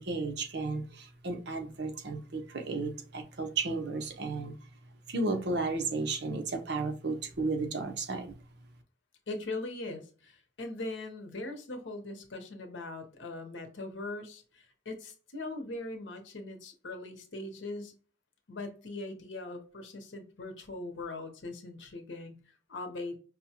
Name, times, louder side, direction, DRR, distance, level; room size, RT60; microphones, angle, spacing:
voice 1, 0.0-4.5 5.1-8.3, right 3 dB, 60° right, 5 dB, 0.7 m, -33 dB
voice 2, 9.3-17.9 18.5-23.2, left 2 dB, 75° left, 4 dB, 0.9 m, -40 dB
5.3 x 2.2 x 2.8 m, 0.38 s
head